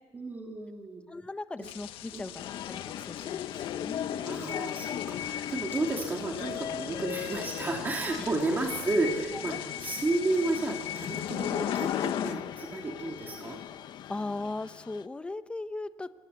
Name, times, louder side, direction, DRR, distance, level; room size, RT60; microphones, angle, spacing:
voice 1, 0.1-1.0 1.6-1.7 2.1-2.3 4.2-13.6, right 2 dB, 20° right, 0 dB, 3.1 m, -32 dB
voice 2, 1.1-4.5 14.1-16.1, left 2 dB, 10° left, 12 dB, 0.8 m, -38 dB
sound 1, 1.6-12.3, left 12 dB, 75° left, 1.5 m, -46 dB
sound 2, 2.4-15.1, left 10 dB, 55° left, 0.8 m, -36 dB
27.0 x 23.0 x 8.5 m, 1.4 s
cardioid pair, 150°, 9 cm